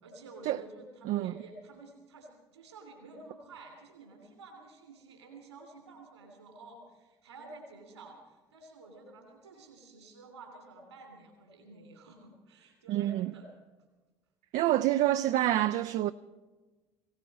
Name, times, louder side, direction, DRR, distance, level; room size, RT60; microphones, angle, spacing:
voice 1, 0.0-13.5, right 2 dB, 90° right, 3.0 m, -51 dB
voice 2, 12.9-13.3 14.5-16.1, right 14 dB, 60° right, 0.5 m, -27 dB
19.5 x 17.5 x 4.2 m
hypercardioid pair, 60°, 14 cm